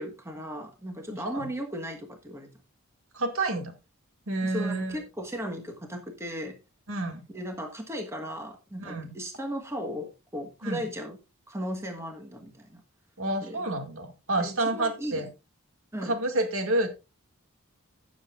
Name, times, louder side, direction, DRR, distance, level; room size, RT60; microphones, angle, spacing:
voice 1, 0.0-2.5 4.4-6.6 7.3-11.2 11.5-12.8 13.4-13.7 14.4-15.3 15.9-16.2, equal, 10° right, 1.3 m, -36 dB
voice 2, 1.1-1.5 3.1-3.7 4.3-5.0 6.9-7.3 8.8-9.2 10.6-10.9 13.2-15.3 16.0-16.9, right 2 dB, 70° right, 2.1 m, -29 dB
15.5 x 7.3 x 2.5 m
head